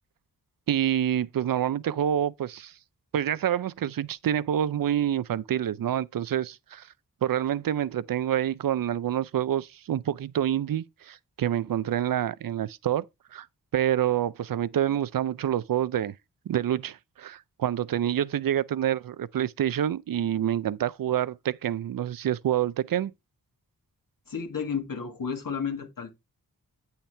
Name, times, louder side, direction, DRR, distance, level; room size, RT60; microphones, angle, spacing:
voice 1, 0.7-2.7 3.1-6.9 7.2-13.0 13.3-13.5 13.7-16.1 16.5-23.1, right 10 dB, 65° right, 0.5 m, -27 dB
voice 2, 24.3-26.1, left 6 dB, 60° left, 1.8 m, -32 dB
8.7 x 5.7 x 3.3 m
cardioid pair, 60°, 37 cm